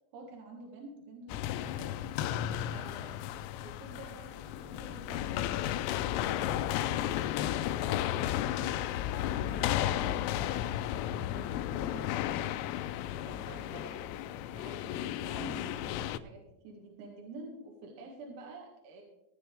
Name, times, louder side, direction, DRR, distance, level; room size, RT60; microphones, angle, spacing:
voice 1, 0.1-2.1 2.7-5.4 5.8-7.0 8.4-10.3 11.0-12.5 13.3-19.0, right 2 dB, 70° right, -1 dB, 3.9 m, -49 dB
sound 1, 1.3-16.2, left 12 dB, 85° left, 3.2 m, -33 dB
18.0 x 10.0 x 3.4 m, 0.85 s
omnidirectional pair, 5.9 m